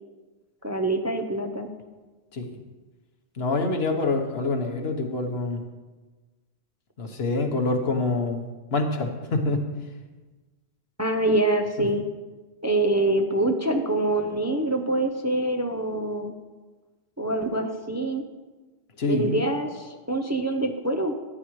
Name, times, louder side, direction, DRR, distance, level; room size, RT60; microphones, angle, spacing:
voice 1, 0.6-1.7 11.0-12.0 12.6-16.3 17.2-18.2 19.1-21.1, right 2 dB, 20° right, 3 dB, 0.6 m, -25 dB
voice 2, 3.3-5.6 7.0-9.7 11.8-11.9 19.0-19.4, left 3 dB, 70° left, 4 dB, 1.4 m, -26 dB
13.5 x 9.9 x 3.2 m, 1.2 s
omnidirectional pair, 1.1 m